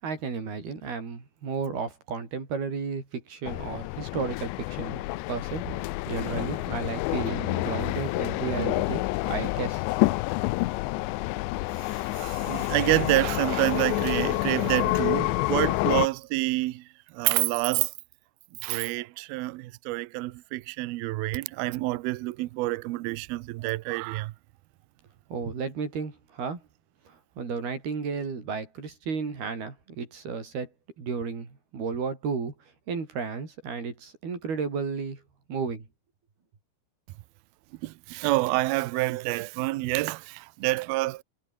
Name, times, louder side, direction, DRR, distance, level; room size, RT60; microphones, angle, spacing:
voice 1, 0.0-9.9 25.3-26.6 27.1-30.7 31.0-32.5 32.9-35.2 35.5-35.9, right 5 dB, 55° right, 7.8 m, -33 dB
sound 1, 3.5-16.1, left 20 dB, 85° left, 2.9 m, -28 dB
voice 2, 12.1-16.8 17.1-17.9 18.6-24.3 37.8-41.2, right 20 dB, 85° right, 2.2 m, -28 dB
omnidirectional pair, 5.4 m